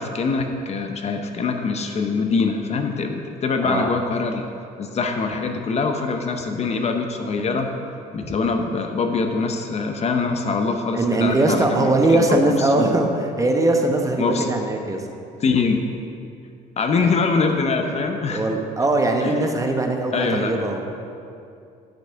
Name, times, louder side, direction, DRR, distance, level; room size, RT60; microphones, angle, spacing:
voice 1, 0.0-4.5 4.8-7.7 8.1-13.0 14.2-14.5 15.4-15.8 16.8-18.4 19.2-19.3 20.1-20.5, left 4 dB, 40° left, 5 dB, 0.7 m, -23 dB
voice 2, 3.6-3.9 10.9-15.0 17.0-17.1 18.3-20.8, right 2 dB, 20° right, 3 dB, 0.9 m, -21 dB
9.0 x 5.9 x 5.6 m, 2.5 s
cardioid pair, 110°, 17 cm